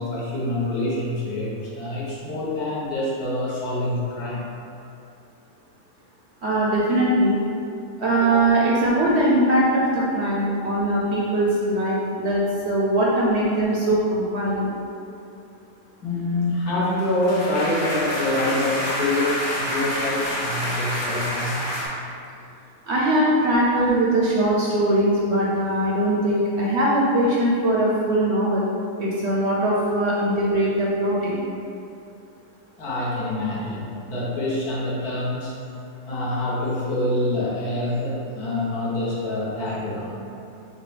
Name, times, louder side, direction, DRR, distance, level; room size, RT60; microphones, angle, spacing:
voice 1, 0.0-4.5 16.0-21.6 32.8-35.5 36.1-40.2, left 1 dB, 80° left, -7 dB, 1.6 m, -26 dB
voice 2, 6.4-7.4 8.0-14.7 22.9-28.7 29.0-31.4, right 1 dB, 65° right, -5 dB, 0.7 m, -21 dB
sound 1, 16.8-21.9, left 1 dB, 55° left, 1.3 m, -28 dB
6.5 x 2.2 x 3.2 m, 2.6 s
omnidirectional pair, 1.6 m